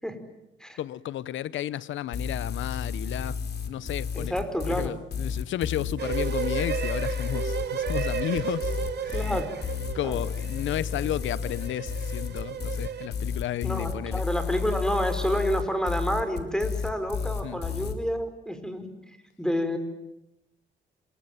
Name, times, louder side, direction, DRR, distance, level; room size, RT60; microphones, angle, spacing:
voice 1, 0.8-4.4 4.7-9.4 9.9-14.2 17.4-17.6, left 12 dB, 75° left, 0.9 m, -33 dB
sound 1, 2.1-18.0, left 6 dB, 55° left, 3.7 m, -31 dB
voice 2, 4.1-4.9 9.1-9.5 10.1-10.2 13.6-18.9 19.4-19.8, equal, 5° left, 5.0 m, -29 dB
sound 2, 6.0-13.1, right 8 dB, 55° right, 2.9 m, -34 dB
27.5 x 23.0 x 9.3 m
cardioid pair, 90°, 20 cm